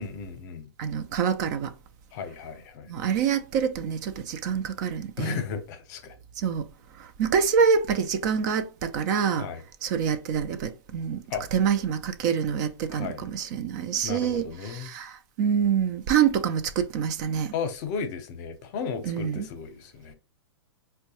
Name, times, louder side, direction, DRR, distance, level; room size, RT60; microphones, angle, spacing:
voice 1, 0.0-0.7 2.1-2.9 5.2-6.2 9.4-9.6 11.3-11.5 12.9-13.3 14.0-14.9 17.5-20.1, left 6 dB, 45° left, 0.7 m, -34 dB
voice 2, 0.8-1.7 2.9-5.4 6.4-6.7 7.0-9.5 9.8-11.2 11.5-14.5 14.7-15.1 15.4-17.5 19.1-19.5, right 7 dB, 45° right, 0.4 m, -26 dB
4.5 x 2.2 x 2.8 m
hypercardioid pair, 135°, 14 cm